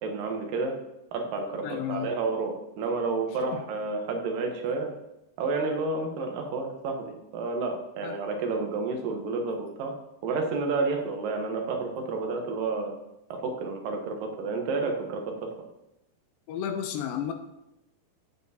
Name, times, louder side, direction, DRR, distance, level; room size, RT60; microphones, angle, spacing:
voice 1, 0.0-0.8 1.1-4.9 5.4-10.0 10.2-12.9 13.3-15.7, right 3 dB, 80° right, 3 dB, 2.8 m, -30 dB
voice 2, 1.6-2.1 3.5-3.6 8.0-8.1 16.5-17.3, left 9 dB, 90° left, 6 dB, 2.4 m, -32 dB
13.0 x 8.9 x 2.9 m, 0.92 s
omnidirectional pair, 3.9 m